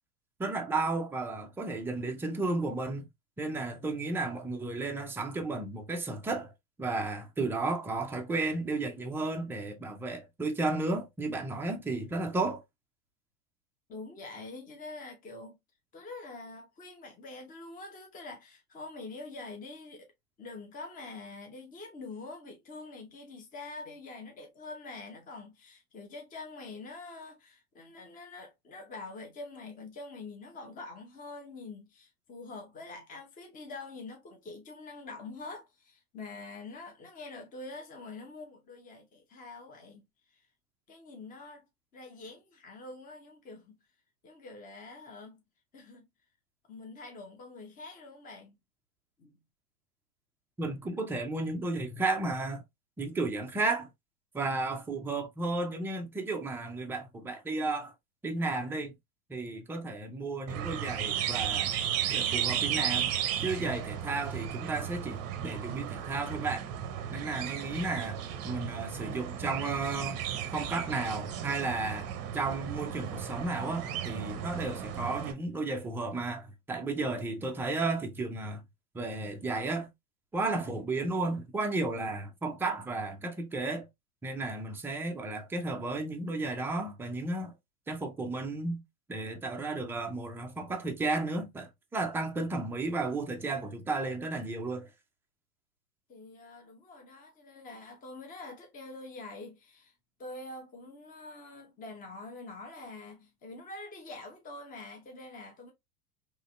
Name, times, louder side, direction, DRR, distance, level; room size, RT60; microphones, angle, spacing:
voice 1, 0.4-3.1 3.4-6.5 6.8-12.6 50.6-52.6 53.0-53.9 54.3-57.9 58.2-59.0 59.3-61.7 62.1-66.7 67.1-70.2 70.5-78.6 78.9-79.9 80.3-83.9 84.2-87.5 87.9-88.8 89.1-94.9, right 3 dB, 5° right, 0.4 m, -33 dB
voice 2, 13.9-15.6 15.9-20.1 20.4-40.4 40.9-41.7 41.9-43.8 44.2-45.4 45.7-46.1 46.7-48.6 49.2-49.4 96.1-99.9 100.2-105.7, left 3 dB, 20° left, 0.9 m, -45 dB
scissor billed starling, 60.5-75.3, right 9 dB, 35° right, 0.7 m, -34 dB
3.9 x 3.1 x 2.4 m
hypercardioid pair, 95°, 46 cm